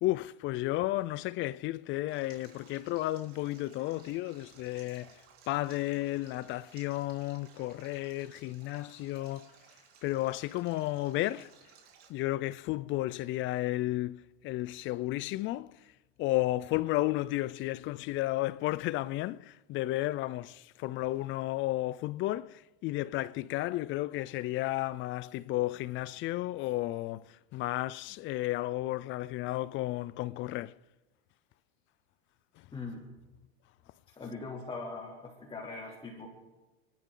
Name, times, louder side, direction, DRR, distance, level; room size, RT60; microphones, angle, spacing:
voice 1, 0.0-5.2 5.5-9.5 10.0-11.5 12.1-15.7 16.2-30.8, left 17 dB, 40° left, 0.5 m, -33 dB
Stream, 2.1-12.1, right 7 dB, 50° right, 3.8 m, -59 dB
voice 2, 32.7-33.0 34.1-36.3, left 3 dB, 20° left, 2.9 m, -41 dB
30.0 x 11.5 x 3.9 m
supercardioid pair, 125°, 30 cm